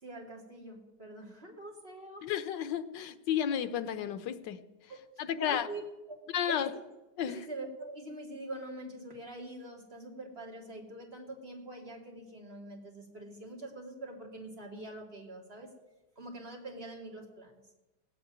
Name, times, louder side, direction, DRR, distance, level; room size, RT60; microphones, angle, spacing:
voice 1, 0.0-2.3 4.9-5.0 5.3-6.8 7.3-15.7 16.2-17.6, right 1 dB, 35° right, -1 dB, 2.7 m, -44 dB
voice 2, 2.2-4.6 5.2-5.7 6.3-6.7 7.2-7.5, left 9 dB, 90° left, 12 dB, 1.5 m, -32 dB
17.0 x 7.8 x 9.2 m, 1.1 s
omnidirectional pair, 1.9 m